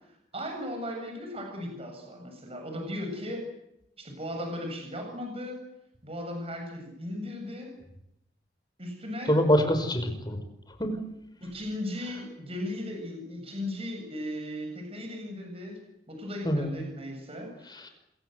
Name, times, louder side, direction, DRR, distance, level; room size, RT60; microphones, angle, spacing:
voice 1, 0.3-3.5 4.0-5.6 6.0-7.7 8.8-9.3 11.4-15.8 16.1-17.9, left 1 dB, 35° right, 3 dB, 7.6 m, -37 dB
voice 2, 9.3-10.4 10.8-11.0 16.4-16.8 17.7-17.9, equal, 25° left, 7 dB, 5.2 m, -25 dB
27.0 x 23.5 x 8.1 m, 0.80 s
head